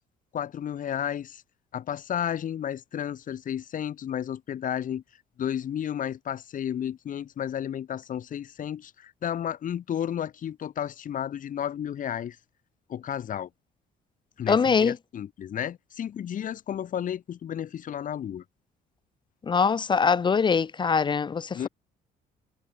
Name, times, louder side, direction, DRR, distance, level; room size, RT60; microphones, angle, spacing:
voice 1, 0.3-1.4 1.7-5.0 5.4-12.4 12.9-13.5 14.4-18.4 21.5-21.7, left 9 dB, 50° left, 3.7 m, -32 dB
voice 2, 14.5-15.0 19.4-21.7, left 5 dB, 30° left, 0.7 m, -23 dB
cardioid pair, 110°, 17 cm